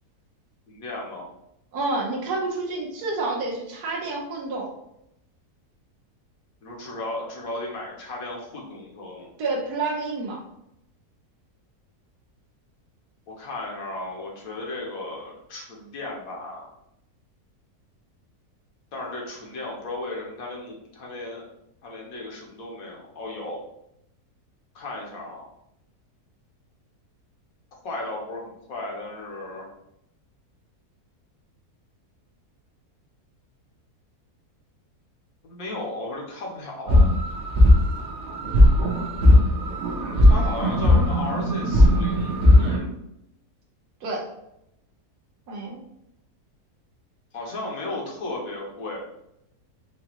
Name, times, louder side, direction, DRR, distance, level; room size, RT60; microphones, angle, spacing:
voice 1, 0.7-1.3 6.6-9.3 13.3-16.7 18.9-21.5 21.8-23.6 24.7-25.5 27.8-29.7 35.4-37.1 40.3-42.9 47.3-49.0, left 2 dB, 65° left, -2 dB, 1.3 m, -35 dB
voice 2, 1.7-4.7 9.4-10.4 44.0-44.3 45.5-45.8, right 3 dB, 80° right, -2 dB, 1.5 m, -29 dB
sound 1, 36.9-42.8, left 1 dB, 55° right, 1.0 m, -18 dB
4.9 x 2.3 x 2.9 m, 0.80 s
omnidirectional pair, 1.7 m